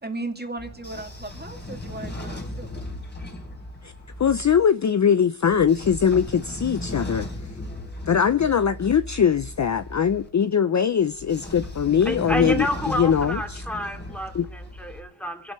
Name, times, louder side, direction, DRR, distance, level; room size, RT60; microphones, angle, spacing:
voice 1, 0.0-2.7 8.5-8.7, right 2 dB, 20° right, 2.4 m, -36 dB
Train / Sliding door, 0.6-4.6 5.4-10.3 11.1-15.0, left 1 dB, 20° left, 3.7 m, -36 dB
voice 2, 4.2-7.3 8.1-13.6 14.3-14.5, left 7 dB, 35° left, 0.6 m, -21 dB
voice 3, 12.0-15.5, equal, 5° left, 2.7 m, -30 dB
26.5 x 12.0 x 3.2 m
wide cardioid pair, 105°, 49 cm